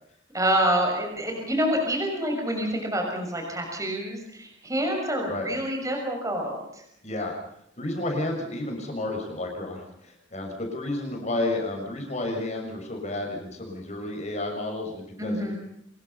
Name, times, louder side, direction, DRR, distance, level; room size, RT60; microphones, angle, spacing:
voice 1, 0.3-6.6 15.2-15.5, equal, 15° right, 1 dB, 6.3 m, -27 dB
voice 2, 7.0-7.3 7.8-15.6, left 2 dB, 35° left, 2 dB, 6.5 m, -31 dB
26.0 x 22.0 x 5.6 m, 0.74 s
head